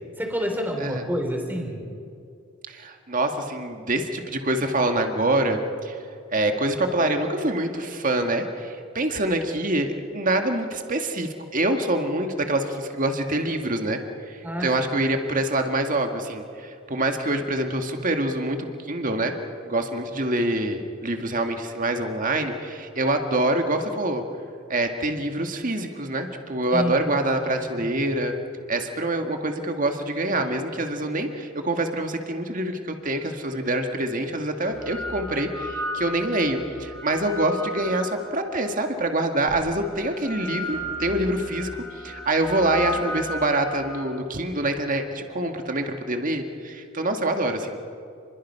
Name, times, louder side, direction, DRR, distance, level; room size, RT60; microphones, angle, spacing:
voice 1, 0.2-1.9 14.4-14.8 26.7-27.3 27.6-28.1, equal, 10° right, 2 dB, 3.7 m, -29 dB
voice 2, 2.7-6.0 6.3-14.0 14.3-18.6 18.9-19.3 19.6-24.2 24.7-28.3 28.7-47.9, right 1 dB, 40° right, 5 dB, 1.9 m, -25 dB
sound 1, 33.4-33.5 34.4-38.7 39.5-44.1, left 1 dB, 10° left, 4.1 m, -35 dB
30.0 x 22.0 x 5.7 m, 2.4 s
head